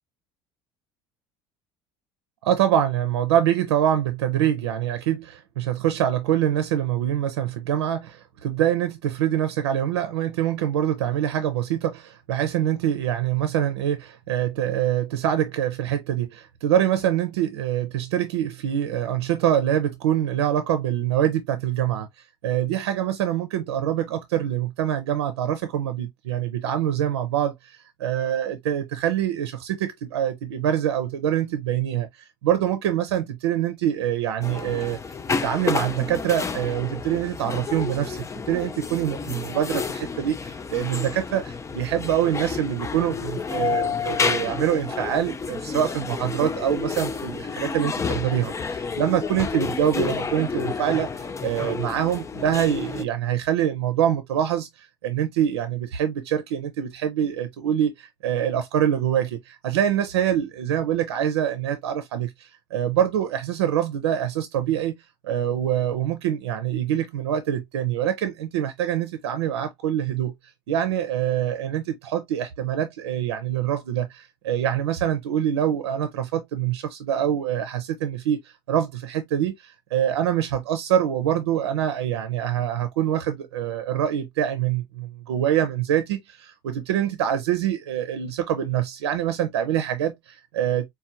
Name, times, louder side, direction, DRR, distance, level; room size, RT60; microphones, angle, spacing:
voice 1, 2.4-22.1 22.4-35.0 35.4-65.0 65.2-70.3 70.7-90.8, right 10 dB, 80° right, 0.5 m, -25 dB
sound 1, 34.4-53.0, left 5 dB, 20° left, 0.5 m, -30 dB
4.3 x 2.3 x 2.6 m
hypercardioid pair, 65°, 14 cm